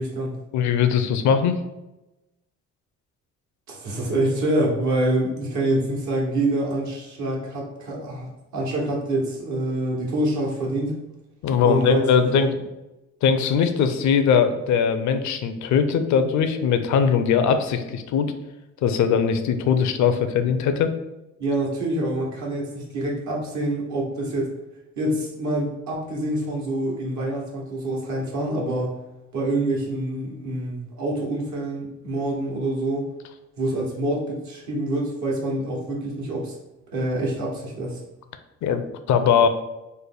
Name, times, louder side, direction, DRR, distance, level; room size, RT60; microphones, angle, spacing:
voice 1, 0.0-0.4 3.7-10.9 11.6-12.5 21.4-24.5 25.0-29.0 29.3-33.1 33.6-36.5 36.9-38.0, right 1 dB, 70° right, -3 dB, 1.2 m, -26 dB
voice 2, 0.5-1.6 11.4-12.6 13.2-18.3 18.8-20.9 38.6-39.5, left 7 dB, 70° left, 8 dB, 0.5 m, -20 dB
3.3 x 2.2 x 3.7 m, 0.98 s
cardioid pair, 90°, 30 cm